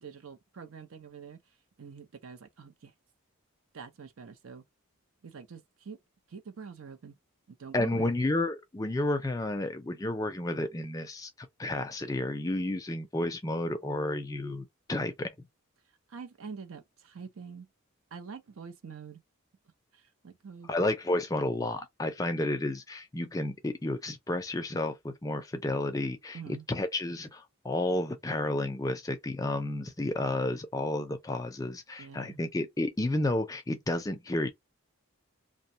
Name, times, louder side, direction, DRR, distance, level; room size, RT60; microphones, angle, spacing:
voice 1, 0.0-1.4 1.8-2.9 3.7-4.6 5.2-6.0 6.3-7.2 7.5-8.2 16.1-17.7 18.1-19.2 19.9-20.7 26.3-26.7 32.0-32.4, right 5 dB, 75° right, 0.6 m, -45 dB
voice 2, 7.7-15.3 20.7-34.5, left 1 dB, 15° left, 0.4 m, -31 dB
2.6 x 2.2 x 2.6 m
head